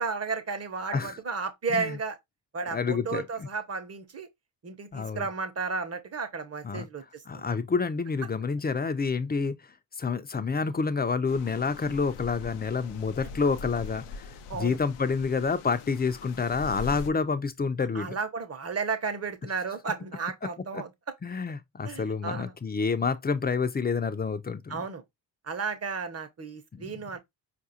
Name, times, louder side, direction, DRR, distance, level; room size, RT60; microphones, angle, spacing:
voice 1, 0.0-2.2 2.5-4.3 4.6-7.4 14.5-14.8 17.9-20.9 21.8-22.5 24.7-25.0 25.4-27.2, right 4 dB, 30° right, 0.9 m, -33 dB
voice 2, 2.7-3.5 4.9-5.3 6.6-6.9 7.3-9.5 10.0-18.2 20.7-20.8 21.2-24.8 26.7-27.0, left 5 dB, 20° left, 0.5 m, -28 dB
sound 1, 11.3-17.1, left 5 dB, 80° left, 0.6 m, -42 dB
4.6 x 2.5 x 2.7 m
supercardioid pair, 55°, 50 cm